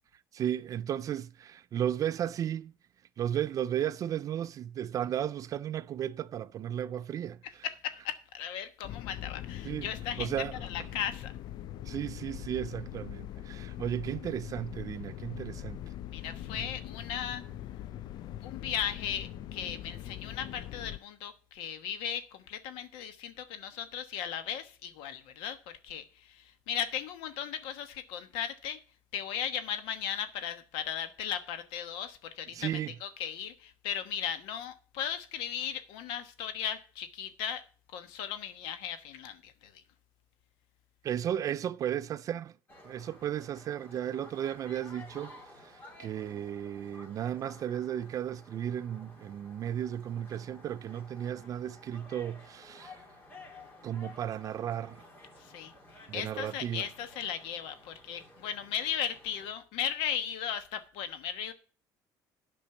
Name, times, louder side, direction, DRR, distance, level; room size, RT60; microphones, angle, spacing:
voice 1, 0.3-2.7 3.2-7.6 9.6-9.9 10.2-10.6 11.9-15.8 32.5-32.9 41.0-42.5 42.8-53.0 53.8-55.0 56.1-56.8, right 10 dB, 40° right, 0.3 m, -34 dB
voice 2, 7.6-10.3 10.6-11.3 16.1-17.4 18.4-25.6 25.8-28.8 29.1-37.6 37.9-39.8 55.4-55.7 56.1-61.5, left 9 dB, 80° left, 1.2 m, -37 dB
sound 1, 8.8-21.0, left 12 dB, 55° left, 0.4 m, -42 dB
sound 2, 42.7-59.5, left 2 dB, 25° left, 3.0 m, -53 dB
8.7 x 5.3 x 7.0 m
cardioid pair, 115°, 8 cm